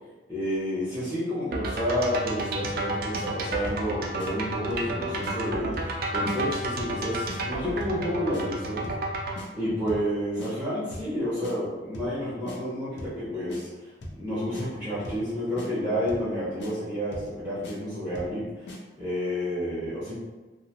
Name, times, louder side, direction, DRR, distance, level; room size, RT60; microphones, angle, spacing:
voice 1, 0.3-8.9 9.5-13.9 14.2-18.7 19.0-20.1, equal, 10° right, -11 dB, 0.6 m, -30 dB
sound 1, 1.5-9.4, right 1 dB, 55° right, 0.3 m, -31 dB
sound 2, 2.6-2.9 3.1-3.3 3.7-3.9 4.2-4.3 4.7-4.9 5.2-5.3 5.7-6.0 6.2-6.4 6.8-7.0 7.3-7.4 7.8-8.0 8.3-8.4 8.8-9.1 9.4-9.5 9.9-10.1 10.4-10.5 10.9-11.1 11.4-11.5 11.9-12.2 12.5-12.6 13.0-13.2 13.5-13.6 14.0-14.2 14.5-14.7 15.0-15.3 15.6-15.7 16.1-16.3 16.6-16.7 17.1-17.3 17.6-17.8 18.1-18.4 18.7-18.8, left 1 dB, 85° left, 0.5 m, -39 dB
2.6 x 2.1 x 2.8 m, 1.2 s
head